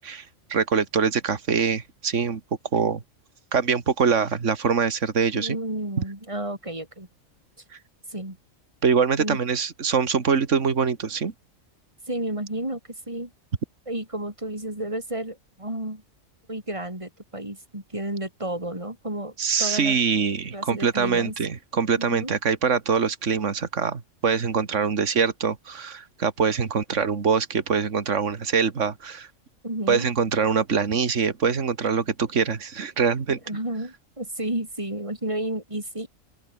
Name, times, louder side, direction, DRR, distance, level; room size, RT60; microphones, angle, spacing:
voice 1, 0.0-2.4 2.7-3.0 3.5-5.6 8.8-11.3 19.4-29.3 29.9-33.4, right 6 dB, 65° right, 2.1 m, -24 dB
voice 2, 5.3-7.1 8.1-8.4 9.2-9.4 12.1-13.3 13.9-16.0 16.5-20.0 20.5-21.3 22.0-22.3 29.6-30.1 33.3-36.1, right 1 dB, 20° right, 6.0 m, -32 dB
open air
omnidirectional pair, 1.4 m